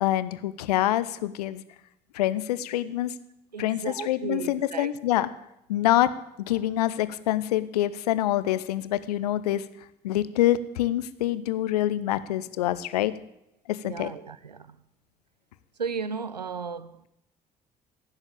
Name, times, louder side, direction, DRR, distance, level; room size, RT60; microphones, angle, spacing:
voice 1, 0.0-1.6 2.1-3.1 3.6-5.3 5.7-6.1 6.5-9.6 10.0-13.1 13.7-14.1, left 13 dB, 75° left, 0.6 m, -26 dB
voice 2, 3.5-5.3 13.8-14.8 15.8-17.1, right 5 dB, 90° right, 0.5 m, -35 dB
16.0 x 7.3 x 8.6 m
figure-of-eight pair, 45°, 20 cm